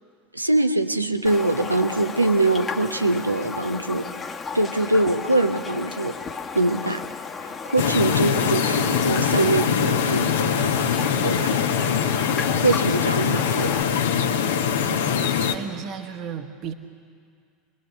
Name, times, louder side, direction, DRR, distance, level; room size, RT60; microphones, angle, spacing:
voice 1, 0.3-4.1 4.5-7.0 7.4-10.8 11.2-11.7 12.4-13.8, right 2 dB, 90° right, 7 dB, 1.0 m, -23 dB
Raindrop, 1.2-13.8, left 5 dB, 25° left, 1.4 m, -34 dB
sound 1, 7.8-15.6, left 7 dB, 70° left, 1.3 m, -23 dB
voice 2, 8.3-8.7 15.1-16.7, right 7 dB, 45° right, 6 dB, 1.5 m, -35 dB
27.0 x 21.0 x 7.0 m, 2.2 s
figure-of-eight pair, 75°, 0 cm